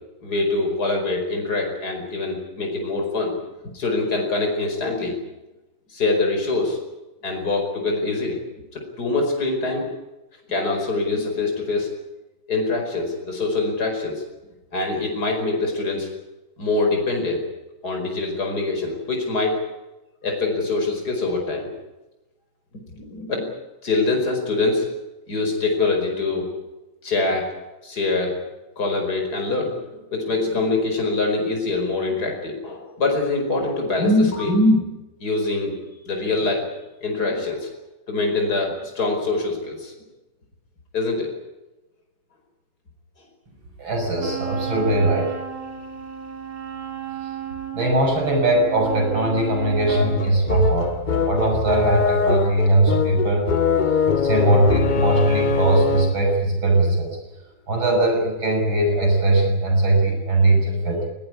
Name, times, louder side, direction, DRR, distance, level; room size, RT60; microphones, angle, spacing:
voice 1, 0.2-3.4 3.7-5.2 5.9-6.8 7.2-8.4 8.7-9.9 10.5-11.9 12.5-14.2 14.7-16.1 16.6-17.4 17.8-19.6 20.2-21.7 22.9-23.5 23.8-24.9 25.3-26.5 27.0-27.5 27.8-28.4 28.8-34.8 35.2-35.8 36.0-36.7 37.0-37.7 38.1-39.9 40.9-41.3, left 3 dB, 50° left, 2 dB, 5.5 m, -24 dB
voice 2, 43.8-45.3 47.7-51.0 51.3-53.4 54.2-57.2 57.7-61.1, right 2 dB, 75° right, 3 dB, 7.7 m, -20 dB
Wind instrument woodwind instrument, 44.2-50.3, right 8 dB, 45° right, 3.3 m, -33 dB
sound 1, 49.9-56.3, left 5 dB, 80° left, 0.4 m, -22 dB
20.5 x 19.0 x 9.8 m, 1.0 s
omnidirectional pair, 2.2 m